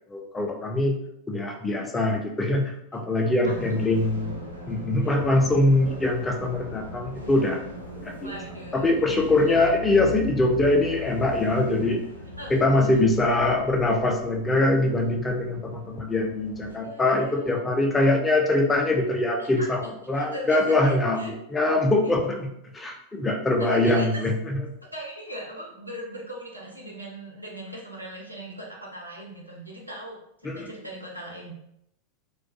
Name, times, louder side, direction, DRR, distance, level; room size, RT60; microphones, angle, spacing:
voice 1, 0.1-1.0 1.3-4.3 4.7-7.6 8.0-8.3 8.7-12.0 12.5-19.8 20.1-24.3 30.4-30.7, left 2 dB, 15° left, 2 dB, 0.4 m, -23 dB
voice 2, 2.9-3.6 5.0-5.1 8.2-9.8 12.4-13.0 16.6-17.6 19.4-21.3 23.6-24.2 24.8-31.5, equal, 90° right, -2 dB, 0.6 m, -39 dB
sound 1, 3.4-16.8, left 2 dB, 90° left, 0.5 m, -39 dB
2.3 x 2.2 x 2.6 m, 0.78 s
figure-of-eight pair, 90°, 0 cm